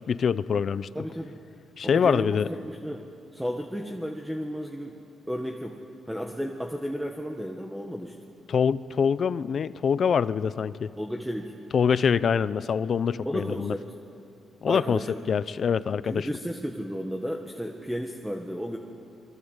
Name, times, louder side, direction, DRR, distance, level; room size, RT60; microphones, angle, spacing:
voice 1, 0.0-0.9 1.8-2.5 8.5-10.9 11.7-13.7 14.6-16.3, left 7 dB, 55° left, 17 dB, 0.7 m, -25 dB
voice 2, 1.0-1.4 1.8-5.0 5.3-5.8 6.1-8.2 11.0-11.5 13.3-13.9 14.7-15.2 16.0-18.8, equal, 5° right, 2 dB, 1.6 m, -33 dB
27.5 x 22.5 x 8.2 m, 2.6 s
cardioid pair, 105°, 0 cm